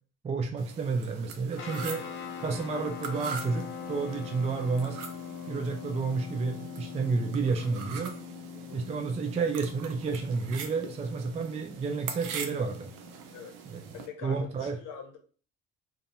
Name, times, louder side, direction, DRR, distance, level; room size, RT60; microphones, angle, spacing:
voice 1, 0.2-2.0 2.4-5.0 5.5-8.2 8.7-12.9 13.7-13.8 14.2-14.8, right 4 dB, 20° right, 4 dB, 0.4 m, -31 dB
sound 1, 0.6-14.1, right 6 dB, 60° right, 0.6 m, -43 dB
sound 2, 1.6-13.4, left 7 dB, 35° left, 0.5 m, -43 dB
voice 2, 8.5-8.9 13.3-13.6 13.9-15.2, left 6 dB, 60° left, 4 dB, 0.8 m, -44 dB
2.6 x 2.2 x 2.6 m, 0.40 s
hypercardioid pair, 60°, 36 cm